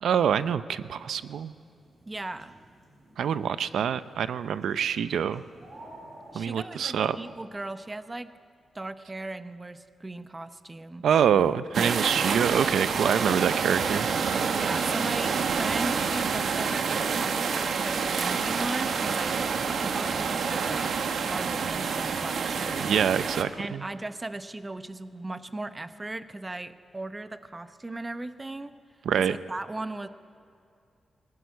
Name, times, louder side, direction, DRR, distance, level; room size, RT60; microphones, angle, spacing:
voice 1, 0.0-1.5 3.2-5.4 6.3-7.2 11.0-14.1 22.8-23.8 29.1-29.4, right 8 dB, 90° right, 14 dB, 0.6 m, -25 dB
sound 1, 0.9-7.4, right 1 dB, 35° right, 5.7 m, -52 dB
voice 2, 2.1-2.5 6.3-8.3 8.7-11.0 14.5-19.4 19.8-20.9 21.2-22.9 23.6-28.7 29.1-30.1, right 2 dB, 15° right, 11 dB, 0.8 m, -37 dB
sound 2, 11.7-23.4, right 5 dB, 65° right, 1.3 m, -28 dB
21.0 x 18.0 x 9.5 m, 2.5 s
wide cardioid pair, 150°, 0 cm